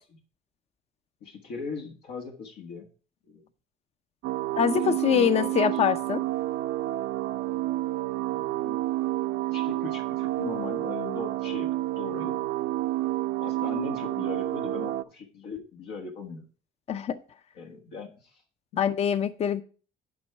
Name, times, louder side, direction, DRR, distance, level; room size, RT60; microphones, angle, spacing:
voice 1, 1.2-2.9 3.2-3.4 4.5-4.6 4.8-5.5 8.3-8.8 9.5-11.7 11.9-12.3 13.4-16.4 17.6-18.4 18.7-18.8, left 5 dB, 85° left, 1.5 m, -39 dB
sound 1, 4.2-15.0, right 16 dB, 75° right, 0.5 m, -29 dB
voice 2, 4.6-6.2 16.9-17.2 18.8-19.6, left 8 dB, 40° left, 0.6 m, -24 dB
10.0 x 5.2 x 4.6 m
cardioid pair, 110°, 17 cm